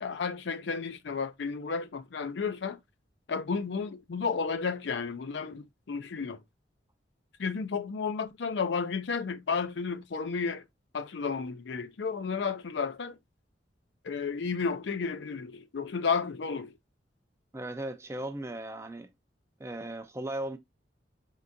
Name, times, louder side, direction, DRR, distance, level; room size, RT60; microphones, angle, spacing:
voice 1, 0.0-2.8 3.3-6.4 7.4-10.6 10.9-13.2 14.0-16.7, left 5 dB, 65° left, 0.5 m, -32 dB
voice 2, 17.5-19.1 19.6-20.6, right 1 dB, 15° right, 0.4 m, -37 dB
4.5 x 3.7 x 2.6 m
head